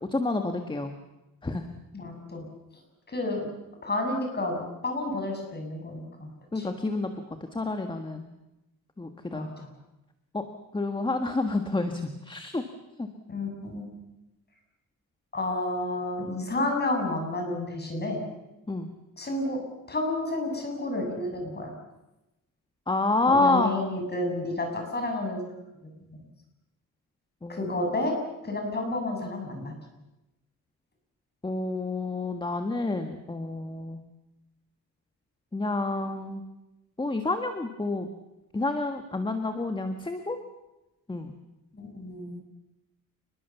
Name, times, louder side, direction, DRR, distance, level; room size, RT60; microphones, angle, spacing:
voice 1, 0.1-0.9 1.4-1.7 6.5-7.1 7.5-8.3 9.0-9.4 10.3-10.4 10.7-12.6 13.0-13.1 18.7-18.9 22.9-23.7 27.4-27.8 31.4-34.0 35.5-36.4 37.0-38.1 38.5-40.4 41.1-41.3, left 2 dB, 15° left, 6 dB, 1.7 m, -28 dB
voice 2, 1.9-2.5 3.1-3.5 3.8-6.3 6.6-6.7 9.3-9.7 13.3-13.8 15.3-18.2 19.2-19.6 19.9-21.7 23.3-25.4 26.0-26.2 27.5-28.1 28.4-29.7 41.7-42.4, left 2 dB, 30° left, 3 dB, 6.9 m, -30 dB
28.5 x 21.0 x 7.2 m, 0.97 s
wide cardioid pair, 130°, 33 cm